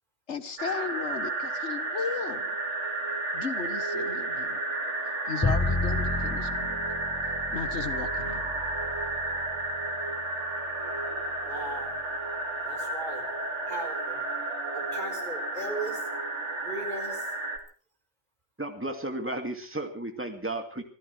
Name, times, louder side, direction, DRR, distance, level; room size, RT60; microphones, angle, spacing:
voice 1, 0.3-2.6 3.3-4.6 5.3-6.8 7.5-8.5, left 5 dB, 80° left, 11 dB, 1.7 m, -35 dB
sound 1, 0.6-17.6, right 2 dB, 90° right, 2.8 m, -32 dB
Bowed string instrument, 5.4-11.5, left 2 dB, 15° left, 0.9 m, -33 dB
voice 2, 11.4-11.9 12.6-13.2 13.7-14.2 14.7-16.0 16.6-17.3, right 2 dB, 45° right, 3 dB, 4.8 m, -37 dB
voice 3, 18.6-20.8, right 1 dB, 10° right, 5 dB, 2.3 m, -33 dB
26.0 x 15.5 x 3.4 m, 0.38 s
omnidirectional pair, 1.2 m